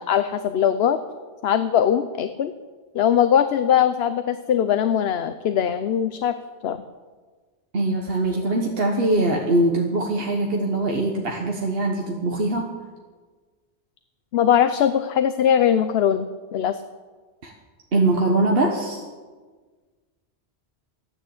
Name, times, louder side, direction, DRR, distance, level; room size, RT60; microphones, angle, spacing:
voice 1, 0.1-1.0 1.4-2.5 2.9-6.3 6.6-6.8 14.3-16.8, left 9 dB, 70° left, 11 dB, 0.9 m, -21 dB
voice 2, 7.7-12.7 17.4-17.5 17.9-19.0, right 2 dB, 65° right, 1 dB, 1.5 m, -22 dB
14.5 x 10.5 x 7.9 m, 1.4 s
omnidirectional pair, 1.1 m